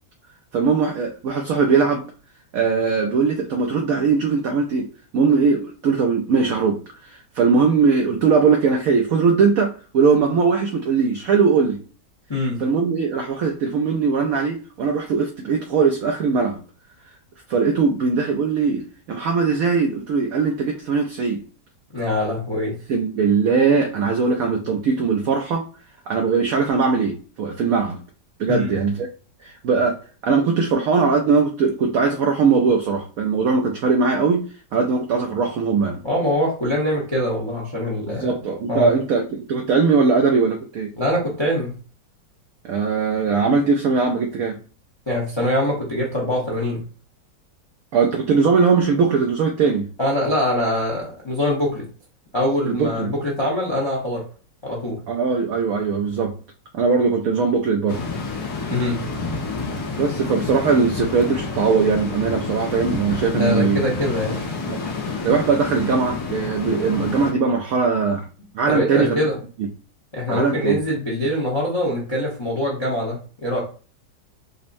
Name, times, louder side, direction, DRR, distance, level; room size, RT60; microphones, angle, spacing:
voice 1, 0.5-2.0 2.5-4.9 5.1-11.8 12.6-16.6 17.5-21.4 22.9-25.6 26.1-28.0 28.4-29.1 29.4-34.4 34.7-36.0 38.1-40.9 42.6-44.6 47.9-49.9 52.6-53.1 55.1-56.4 56.7-58.0 60.0-63.8 64.7-64.8 65.1-68.2 68.5-69.2 69.6-69.7 70.3-70.8, right 5 dB, 70° right, 2 dB, 0.9 m, -20 dB
voice 2, 21.9-22.7 28.5-28.7 36.0-38.3 38.7-38.9 41.0-41.7 45.1-46.8 50.0-51.9 52.3-54.2 54.6-55.0 58.6-59.0 63.3-64.5 68.7-69.3 70.1-73.6, left 1 dB, 25° left, -4 dB, 0.7 m, -23 dB
sound 1, 57.9-67.3, left 4 dB, 65° left, 1.4 m, -29 dB
5.2 x 2.1 x 2.6 m, 0.37 s
omnidirectional pair, 1.9 m